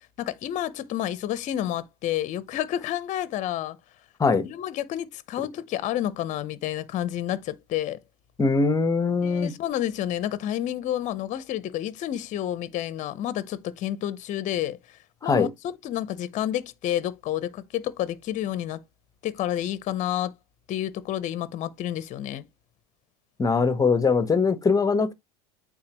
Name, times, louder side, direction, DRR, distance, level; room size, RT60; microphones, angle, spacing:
voice 1, 0.2-3.8 4.4-8.0 9.2-15.0 15.2-18.8 19.2-20.3 20.7-22.4, left 12 dB, 40° left, 0.8 m, -30 dB
voice 2, 8.4-9.5 15.2-15.5 23.4-25.1, left 4 dB, 20° left, 1.0 m, -22 dB
8.7 x 4.1 x 3.0 m
hypercardioid pair, 90°, 19 cm